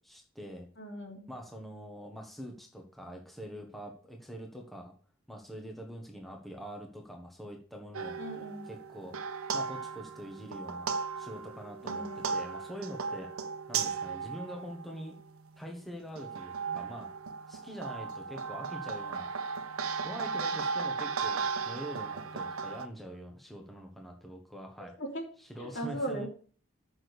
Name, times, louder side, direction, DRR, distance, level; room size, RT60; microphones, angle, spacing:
voice 1, 0.0-0.7 1.3-4.9 5.3-8.2 8.7-9.1 9.5-10.9 11.2-13.3 13.7-15.1 15.6-17.1 17.5-19.3 20.0-24.9 25.5-26.3, equal, ahead, 1 dB, 1.4 m, -44 dB
voice 2, 0.8-1.3 8.2-8.7 11.8-12.3 25.0-25.3 25.6-26.3, right 1 dB, 60° left, 1 dB, 3.2 m, -38 dB
sound 1, 7.9-15.4 16.0-22.9, right 5 dB, 90° right, 1.0 m, -36 dB
7.5 x 6.3 x 6.7 m, 0.42 s
head